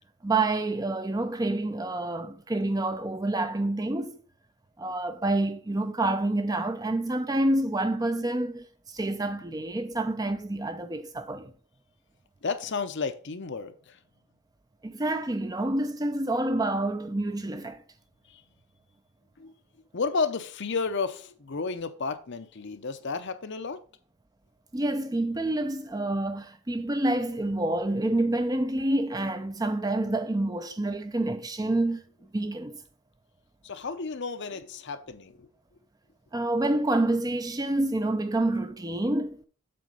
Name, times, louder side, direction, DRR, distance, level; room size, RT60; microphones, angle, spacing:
voice 1, 0.2-4.2 4.8-11.5 14.8-17.8 24.7-32.0 32.3-32.8 36.3-39.5, right 2 dB, 15° right, 0.5 m, -28 dB
voice 2, 12.4-14.0 18.3-18.4 19.4-19.5 19.9-23.8 33.6-35.5, left 4 dB, 50° left, 0.7 m, -32 dB
7.7 x 4.4 x 5.4 m
head